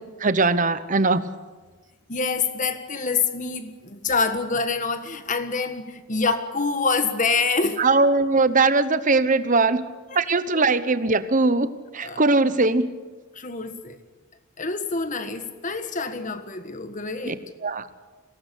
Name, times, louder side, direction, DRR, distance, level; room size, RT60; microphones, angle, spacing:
voice 1, 0.2-1.3 7.8-9.8 10.1-12.9 17.2-17.3 17.6-17.9, right 3 dB, 35° right, 13 dB, 1.0 m, -20 dB
voice 2, 2.1-7.8 10.1-10.2 10.6-10.7 12.0-12.2 13.3-14.0 14.6-17.4, left 4 dB, 35° left, 9 dB, 1.6 m, -26 dB
23.0 x 18.0 x 8.4 m, 1.3 s
head